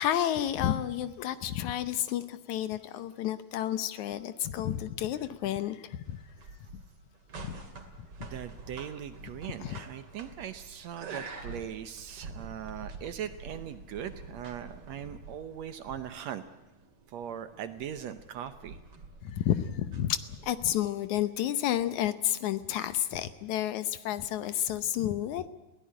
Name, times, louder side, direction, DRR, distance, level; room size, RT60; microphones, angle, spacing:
voice 1, 0.0-6.2 7.4-7.6 9.6-9.8 19.2-25.5, left 11 dB, 70° left, 13 dB, 2.1 m, -31 dB
sound 1, 6.0-20.9, right 3 dB, 45° right, 3.3 m, -47 dB
voice 2, 8.2-16.4 17.1-18.8, right 9 dB, 70° right, 11 dB, 1.8 m, -40 dB
21.5 x 17.0 x 9.9 m, 1.0 s
omnidirectional pair, 3.8 m